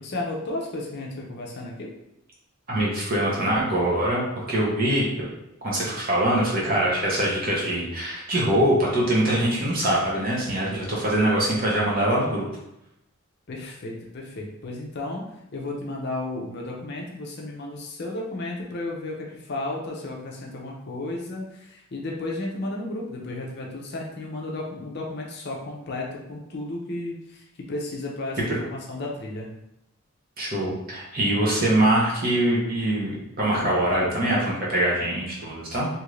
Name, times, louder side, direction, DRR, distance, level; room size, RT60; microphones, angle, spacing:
voice 1, 0.0-1.9 13.5-15.2 15.5-29.5, left 2 dB, 50° left, -1 dB, 0.5 m, -33 dB
voice 2, 2.7-5.3 5.6-12.4 28.5-28.6 30.4-35.9, right 1 dB, 40° right, -5 dB, 0.8 m, -23 dB
2.8 x 2.5 x 3.1 m, 0.85 s
head